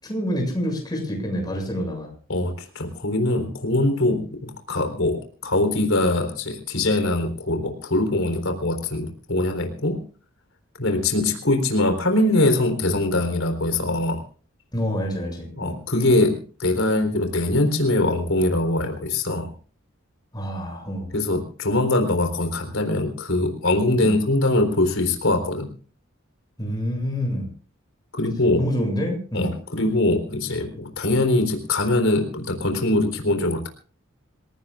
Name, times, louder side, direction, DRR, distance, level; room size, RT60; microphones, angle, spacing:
voice 1, 0.0-2.1 14.7-15.8 20.3-21.1 23.9-24.1 26.6-27.5 28.6-29.5, equal, 20° left, 2 dB, 7.1 m, -27 dB
voice 2, 2.3-10.0 10.8-14.2 15.6-19.5 21.1-25.7 28.1-28.6 29.3-33.7, left 2 dB, 85° left, 5 dB, 4.0 m, -22 dB
27.5 x 17.5 x 2.5 m, 0.40 s
head